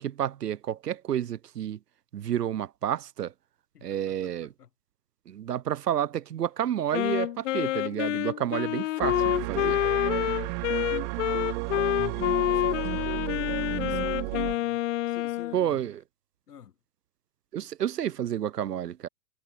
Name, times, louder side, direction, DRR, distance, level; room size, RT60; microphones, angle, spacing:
voice 1, 0.0-1.8 2.1-3.3 3.8-4.5 5.3-9.8 15.5-16.0 17.5-19.1, right 10 dB, 80° right, 1.0 m, -30 dB
voice 2, 3.7-4.7 11.3-11.6 12.1-14.8 15.1-15.9 16.5-16.8, left 9 dB, 70° left, 7.1 m, -49 dB
Wind instrument woodwind instrument, 6.9-15.6, left 16 dB, 50° left, 0.8 m, -28 dB
sound 1, 9.0-14.6, right 40 dB or more, 35° right, 2.2 m, -32 dB
hypercardioid pair, 120°, 47 cm